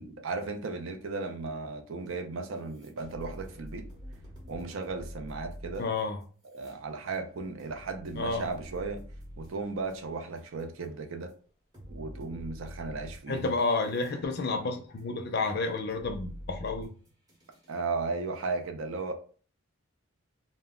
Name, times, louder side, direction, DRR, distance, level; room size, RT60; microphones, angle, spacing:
voice 1, 0.0-3.9 4.5-5.8 6.5-9.0 9.4-11.3 11.9-13.6 17.7-19.1, right 3 dB, 70° right, 0.5 m, -35 dB
sound 1, 2.1-2.2 2.5-10.9 11.3-11.4 11.7-14.2 14.6-17.8, equal, 20° right, 0.7 m, -47 dB
voice 2, 5.8-6.2 8.2-8.5 13.3-16.9, left 3 dB, 50° left, 0.4 m, -30 dB
2.1 x 2.0 x 3.5 m
head